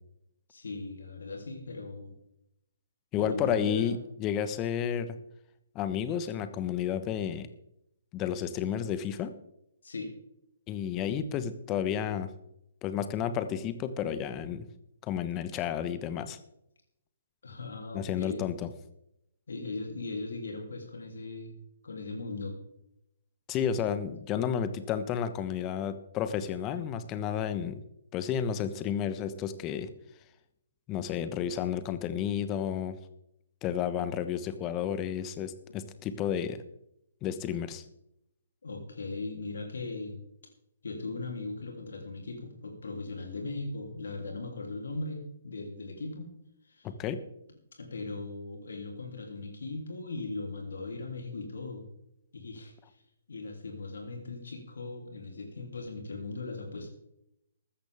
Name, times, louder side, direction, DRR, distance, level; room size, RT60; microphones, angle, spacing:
voice 1, 0.5-2.1 3.2-4.0 9.8-10.1 17.4-18.5 19.5-21.5 21.8-22.6 38.6-40.2 40.8-46.3 46.6-46.9 47.8-51.9 52.3-52.7 53.3-56.9, left 3 dB, 70° left, 2 dB, 3.2 m, -38 dB
voice 2, 3.1-5.2 5.7-7.5 8.1-9.3 10.7-12.3 12.8-14.7 15.0-16.4 17.9-18.7 23.5-27.8 28.1-29.9 30.9-33.0 33.6-36.6 37.2-37.8 46.8-47.2, left 9 dB, 25° left, 11 dB, 1.2 m, -31 dB
15.0 x 13.0 x 3.6 m, 0.80 s
figure-of-eight pair, 130°, 0 cm